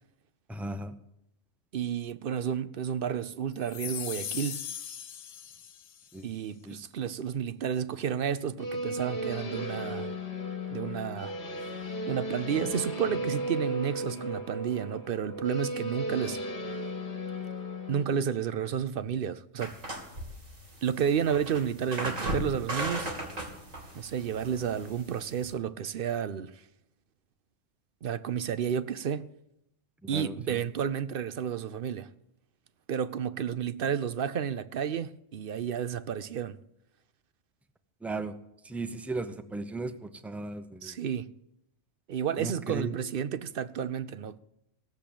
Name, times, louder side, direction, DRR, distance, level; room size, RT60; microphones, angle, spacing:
voice 1, 0.5-0.9 6.1-6.3 6.6-6.8 30.0-30.6 38.0-38.3 38.6-41.0 42.4-43.0, right 2 dB, ahead, 0.6 m, -36 dB
voice 2, 1.7-4.6 6.2-10.1 10.7-11.3 11.6-11.7 12.1-16.4 17.9-19.7 20.8-23.1 23.9-26.5 28.0-29.3 30.1-32.1 32.9-36.6 40.8-41.3 42.1-44.4, right 8 dB, 55° right, 0.7 m, -31 dB
sound 1, 3.6-6.1, left 10 dB, 85° left, 1.1 m, -39 dB
sound 2, 8.6-18.0, equal, 45° left, 1.9 m, -35 dB
sound 3, 19.6-25.5, right 1 dB, 85° right, 3.5 m, -37 dB
17.0 x 7.5 x 8.5 m
omnidirectional pair, 1.3 m